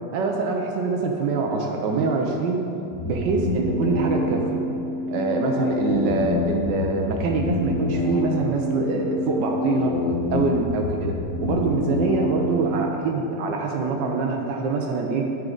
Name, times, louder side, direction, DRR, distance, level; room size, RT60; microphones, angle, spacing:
voice 1, 0.1-2.6 3.0-4.6 5.1-9.9 10.3-11.1 11.4-15.3, right 4 dB, 80° right, 2 dB, 1.3 m, -24 dB
sound 1, 2.9-12.9, left 2 dB, 55° left, 1.0 m, -27 dB
9.1 x 6.3 x 3.8 m, 2.9 s
omnidirectional pair, 1.9 m